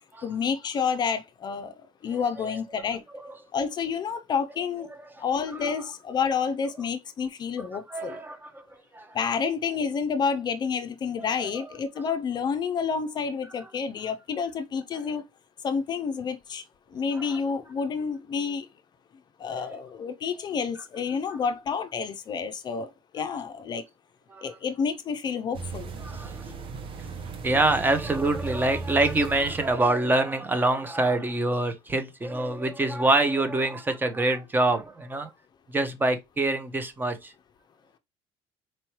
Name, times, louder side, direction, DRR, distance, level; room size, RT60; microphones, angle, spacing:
voice 1, 0.2-1.7 2.0-3.0 3.5-4.9 5.2-8.2 9.1-15.3 15.6-16.6 16.9-18.7 19.4-23.8 24.4-25.9, left 6 dB, 40° left, 0.5 m, -29 dB
voice 2, 7.9-8.6 8.9-9.1 11.2-11.3 17.2-17.3 24.3-24.4 26.0-26.5 27.4-35.3 35.7-37.3, right 2 dB, 15° right, 0.8 m, -25 dB
ambient sound, 25.5-29.9, right 4 dB, 50° right, 1.0 m, -37 dB
4.4 x 3.1 x 2.9 m
cardioid pair, 115°, 11 cm